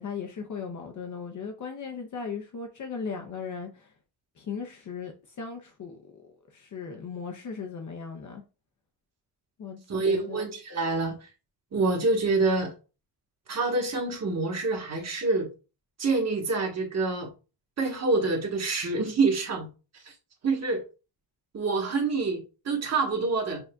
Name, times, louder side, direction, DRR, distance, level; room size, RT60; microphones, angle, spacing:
voice 1, 0.0-3.9 4.4-8.4 9.6-10.4, left 5 dB, 50° left, 0.6 m, -37 dB
voice 2, 9.9-11.2 11.7-12.7 13.5-15.5 16.0-17.3 17.8-19.7 20.4-20.8 21.5-23.6, right 3 dB, 40° right, 1.2 m, -26 dB
6.9 x 2.6 x 2.2 m
wide cardioid pair, 165°, 40 cm